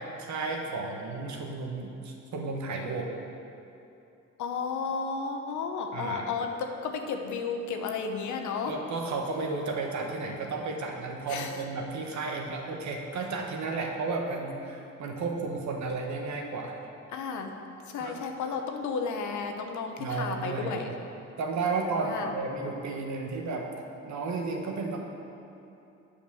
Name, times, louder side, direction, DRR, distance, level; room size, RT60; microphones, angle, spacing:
voice 1, 0.0-3.1 5.9-6.3 8.7-16.7 18.0-18.2 20.0-20.8 21.4-23.7 24.0-25.0, right 3 dB, 70° right, 1 dB, 1.3 m, -33 dB
voice 2, 4.4-8.8 11.3-11.5 17.1-17.6 17.9-20.9 22.0-22.3, left 5 dB, 75° left, 4 dB, 0.9 m, -33 dB
8.6 x 5.1 x 7.0 m, 2.8 s
cardioid pair, 90°, 30 cm